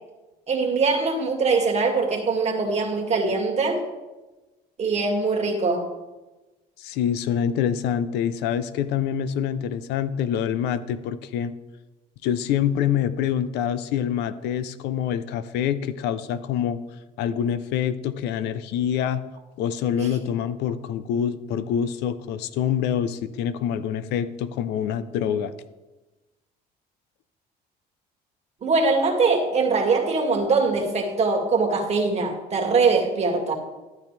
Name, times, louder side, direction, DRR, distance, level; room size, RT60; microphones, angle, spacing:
voice 1, 0.5-3.8 4.8-5.9 28.6-33.5, right 4 dB, 40° right, 1 dB, 2.2 m, -22 dB
voice 2, 6.8-11.5 12.2-16.8 17.2-19.2 19.6-25.5, left 9 dB, 90° left, 13 dB, 0.7 m, -26 dB
13.0 x 9.2 x 3.4 m, 1.1 s
cardioid pair, 110°, 17 cm